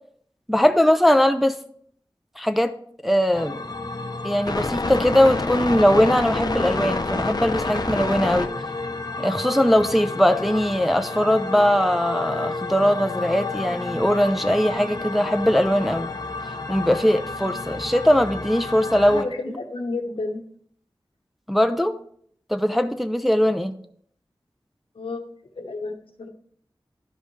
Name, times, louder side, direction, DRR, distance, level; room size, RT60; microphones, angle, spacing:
voice 1, 0.5-1.6 2.4-2.7 3.0-3.6 4.2-8.5 9.2-16.1 16.7-19.6 21.5-21.9 22.5-23.7, equal, ahead, 8 dB, 0.5 m, -20 dB
sound 1, 3.3-19.2, left 3 dB, 50° left, 0.7 m, -29 dB
voice 2, 19.1-20.4 25.0-25.2 25.6-26.3, left 3 dB, 90° left, 5 dB, 0.9 m, -31 dB
11.0 x 5.3 x 3.2 m, 0.62 s
wide cardioid pair, 70°, 9 cm